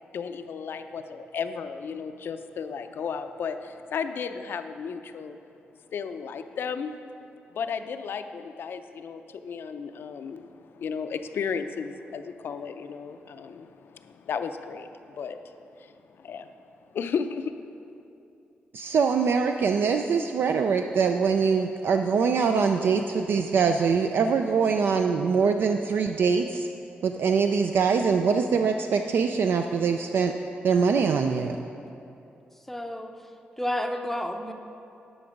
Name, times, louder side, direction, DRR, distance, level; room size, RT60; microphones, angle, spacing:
voice 1, 0.1-5.4 5.9-6.9 7.5-16.5 16.9-17.5, left 6 dB, 70° left, 9 dB, 0.5 m, -34 dB
voice 2, 18.7-26.7 27.0-30.3 30.6-31.6, right 5 dB, 70° right, 5 dB, 0.4 m, -23 dB
voice 3, 32.7-33.1 33.6-34.5, left 1 dB, 5° left, 5 dB, 0.5 m, -30 dB
11.0 x 5.8 x 5.2 m, 2.7 s
cardioid pair, 100°, 4 cm